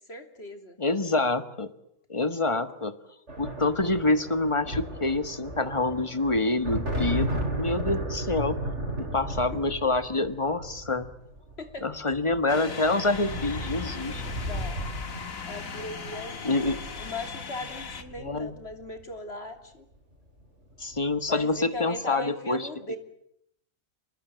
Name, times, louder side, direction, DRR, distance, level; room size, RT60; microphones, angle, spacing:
voice 1, 0.1-0.8 11.6-11.8 14.3-14.8 15.5-19.8 21.3-23.0, left 2 dB, 50° left, 6 dB, 3.4 m, -38 dB
voice 2, 0.8-1.7 2.1-2.9 3.4-8.6 9.0-11.1 11.8-14.2 16.4-16.8 18.2-18.5 20.8-22.7, left 2 dB, 25° left, 10 dB, 1.6 m, -27 dB
sound 1, 3.3-19.0 20.2-20.4 20.7-21.4, right 1 dB, 55° right, 5.1 m, -35 dB
sound 2, 12.5-18.0, left 5 dB, 80° left, 2.1 m, -38 dB
30.0 x 20.0 x 9.2 m, 0.75 s
omnidirectional pair, 1.4 m